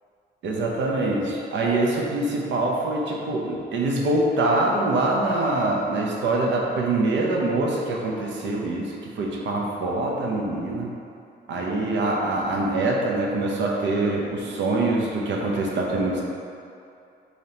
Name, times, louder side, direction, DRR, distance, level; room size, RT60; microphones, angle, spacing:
voice 1, 0.4-10.9 11.5-16.2, right 2 dB, 70° right, -2 dB, 0.6 m, -24 dB
4.9 x 2.8 x 2.8 m, 2.5 s
cardioid pair, 125°, 19 cm